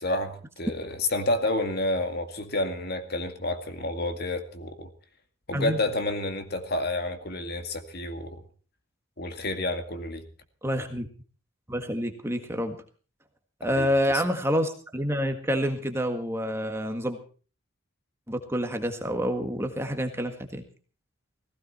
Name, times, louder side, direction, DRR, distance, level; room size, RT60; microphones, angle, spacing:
voice 1, 0.0-4.9 5.5-8.4 9.2-10.2 13.6-13.9 14.1-14.2, left 2 dB, 50° left, 7 dB, 2.1 m, -29 dB
voice 2, 10.6-11.1 11.7-12.8 13.6-17.2 18.3-20.6, equal, 10° right, 6 dB, 1.7 m, -28 dB
18.0 x 16.5 x 4.4 m, 0.39 s
head